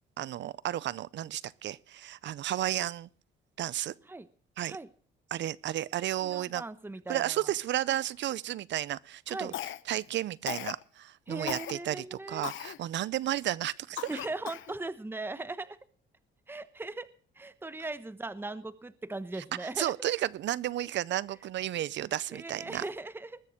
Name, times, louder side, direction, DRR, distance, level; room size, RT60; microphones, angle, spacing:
voice 1, 0.2-3.1 3.6-3.9 4.6-4.8 5.3-6.6 7.1-9.5 9.9-14.1 19.6-22.8, right 13 dB, 65° right, 0.6 m, -33 dB
voice 2, 6.2-7.5 9.3-9.6 11.3-12.5 14.1-15.8 16.5-17.1 17.4-19.9 22.3-23.4, right 2 dB, 10° right, 1.0 m, -39 dB
Cough, 9.5-10.1 10.5-10.8 11.5-11.7 12.4-12.8 13.3-13.4 14.0-14.7, left 13 dB, 80° left, 0.7 m, -38 dB
20.5 x 6.8 x 6.4 m
cardioid pair, 90°, 20 cm